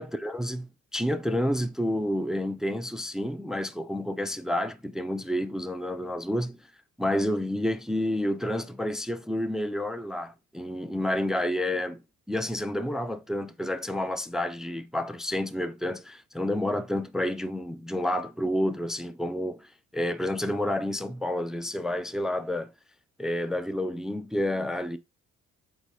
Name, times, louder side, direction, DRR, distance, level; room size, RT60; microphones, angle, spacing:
voice 1, 0.0-6.6 7.0-12.0 12.3-22.7 23.2-25.0, left 1 dB, ahead, 0.3 m, -29 dB
4.0 x 2.7 x 4.7 m
cardioid pair, 90°, 30 cm